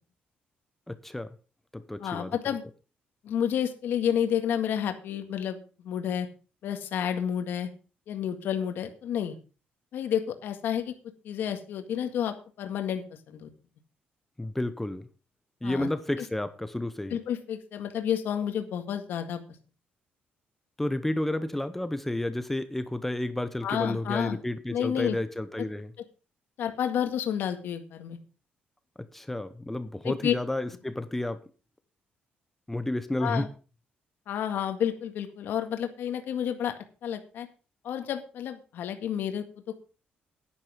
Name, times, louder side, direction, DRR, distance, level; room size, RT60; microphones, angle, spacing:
voice 1, 0.9-1.3 1.7-2.4 14.4-15.1 15.6-17.2 20.8-25.9 29.0-31.4 32.7-33.5, left 1 dB, 5° left, 0.8 m, -31 dB
voice 2, 2.0-2.6 3.2-5.6 5.8-6.3 6.6-7.7 8.1-9.4 9.9-10.9 11.2-13.5 15.6-15.9 17.1-19.4 23.6-24.4 24.7-25.2 26.6-28.2 30.0-30.3 33.2-33.5 34.3-36.7 37.0-37.5 37.8-39.7, left 9 dB, 70° left, 1.8 m, -30 dB
10.5 x 9.9 x 5.1 m
cardioid pair, 155°, 4 cm